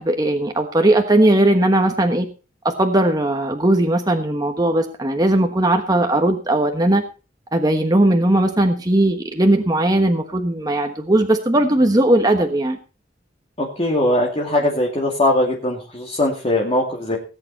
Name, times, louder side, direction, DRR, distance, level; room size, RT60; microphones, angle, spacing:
voice 1, 0.0-2.3 2.6-7.0 7.5-12.8, right 1 dB, 20° right, 4 dB, 1.3 m, -18 dB
voice 2, 13.6-17.2, left 1 dB, 30° left, -2 dB, 2.5 m, -20 dB
18.5 x 8.8 x 4.2 m, 0.34 s
head